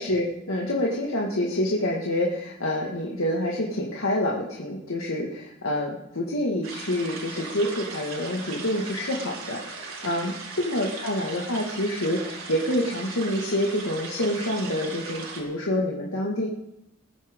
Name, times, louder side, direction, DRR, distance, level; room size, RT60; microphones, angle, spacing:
voice 1, 0.0-16.5, left 1 dB, 85° left, -3 dB, 1.9 m, -27 dB
sound 1, 6.6-15.4, right 4 dB, 90° right, 4.6 m, -38 dB
21.0 x 14.0 x 3.7 m, 0.82 s
head